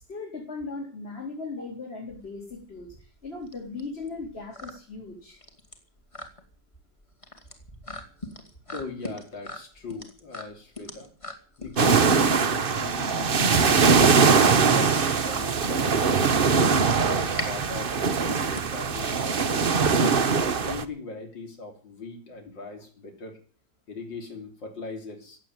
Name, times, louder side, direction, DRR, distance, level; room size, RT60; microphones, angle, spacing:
voice 1, 0.1-5.4, left 3 dB, 30° left, -1 dB, 4.6 m, -38 dB
sound 1, 2.1-19.9, left 1 dB, 15° left, 2.4 m, -42 dB
voice 2, 8.7-11.1 11.6-16.1 16.6-23.4 23.9-25.4, left 4 dB, 80° left, 3 dB, 4.0 m, -40 dB
sound 2, 11.8-20.8, right 5 dB, 40° right, 0.9 m, -21 dB
16.0 x 8.7 x 9.4 m, 0.40 s
omnidirectional pair, 2.0 m